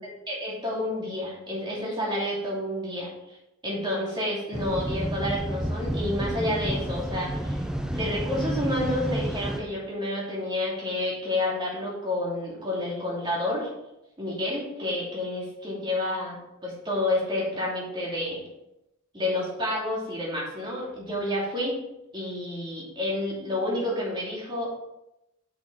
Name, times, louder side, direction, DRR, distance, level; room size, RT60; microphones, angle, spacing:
voice 1, 0.0-3.1 3.6-7.6 7.9-13.7 14.2-18.4 19.1-21.8 22.1-24.7, left 1 dB, 20° right, -5 dB, 2.9 m, -29 dB
sound 1, 4.5-9.6, equal, 5° right, 0.6 m, -30 dB
7.1 x 6.4 x 4.7 m, 0.89 s
head